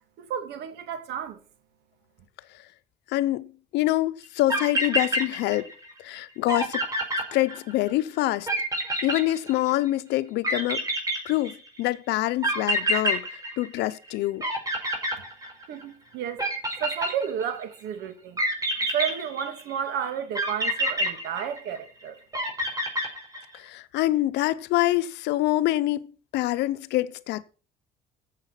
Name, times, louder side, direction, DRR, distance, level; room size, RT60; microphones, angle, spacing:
voice 1, 0.2-1.4 15.7-16.4 16.8-18.4 18.9-22.2, right 8 dB, 85° right, 2.3 m, -32 dB
voice 2, 3.1-5.7 6.0-6.9 7.3-8.5 9.0-10.8 11.2-14.4 23.5-27.4, left 16 dB, 85° left, 0.9 m, -26 dB
sound 1, 4.2-4.3 4.5-5.9 6.2-6.3 6.5-7.9 8.5-9.9 10.4-11.8 12.4-14.1 14.4-15.8 16.4-17.6 18.4-19.8 20.4-21.9 22.3-23.6, equal, 20° right, 5.0 m, -27 dB
15.0 x 7.6 x 5.8 m
cardioid pair, 110°, 17 cm